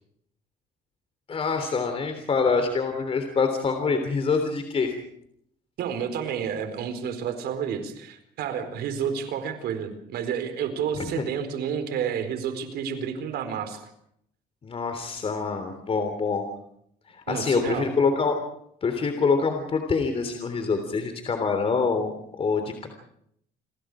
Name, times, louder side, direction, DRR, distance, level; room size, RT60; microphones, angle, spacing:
voice 1, 1.3-4.9 11.2-11.3 14.6-16.5 17.1-18.4 18.8-22.9, left 4 dB, 35° left, 6 dB, 3.3 m, -25 dB
voice 2, 5.8-13.8 17.3-17.9, right 7 dB, 75° right, 8 dB, 4.5 m, -30 dB
29.5 x 21.0 x 5.0 m, 0.71 s
cardioid pair, 110°, 17 cm